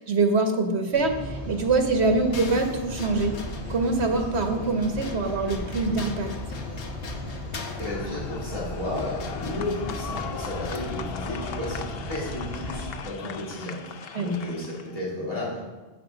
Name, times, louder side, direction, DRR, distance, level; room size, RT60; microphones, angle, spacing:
voice 1, 0.0-3.3 3.7-6.3 14.1-14.4, right 3 dB, 75° right, 4 dB, 1.5 m, -24 dB
sound 1, 0.9-12.8, left 1 dB, 50° left, 4.0 m, -36 dB
sound 2, 2.3-10.8, left 4 dB, 90° left, 1.3 m, -42 dB
sound 3, 7.6-15.0, left 6 dB, 65° left, 0.8 m, -39 dB
voice 2, 7.8-15.7, left 1 dB, 30° left, -9 dB, 3.6 m, -33 dB
11.0 x 8.0 x 4.0 m, 1.2 s
omnidirectional pair, 1.1 m